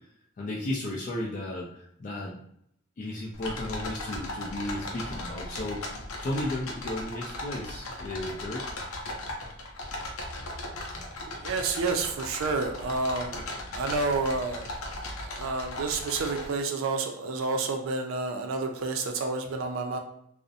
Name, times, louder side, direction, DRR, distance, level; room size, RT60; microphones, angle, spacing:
voice 1, 0.4-2.4 3.0-5.8 6.2-8.7, left 1 dB, 40° left, -3 dB, 0.3 m, -34 dB
sound 1, 3.3-16.5, left 1 dB, 85° left, 0.5 m, -37 dB
voice 2, 11.4-13.5 13.7-14.7 15.2-20.0, right 3 dB, 80° right, 4 dB, 0.4 m, -29 dB
2.5 x 2.0 x 2.6 m, 0.71 s
head